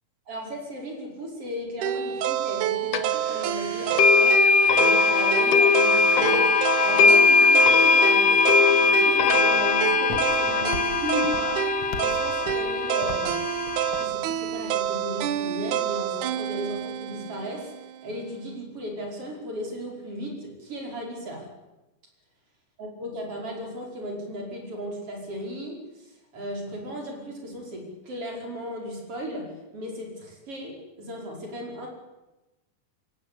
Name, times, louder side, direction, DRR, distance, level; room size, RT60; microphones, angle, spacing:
voice 1, 0.3-4.4 4.7-11.7 12.0-13.6 14.0-17.7 18.0-21.5 22.8-31.9, equal, 40° right, 1 dB, 6.2 m, -35 dB
sound 1, 1.8-17.9, right 10 dB, 70° right, 2.3 m, -28 dB
sound 2, 2.9-3.0 4.0-14.0, left 5 dB, 60° left, 2.0 m, -20 dB
Walk footsteps, 8.7-14.9, left 3 dB, 45° left, 2.6 m, -41 dB
25.5 x 17.5 x 8.6 m, 1.0 s
omnidirectional pair, 3.8 m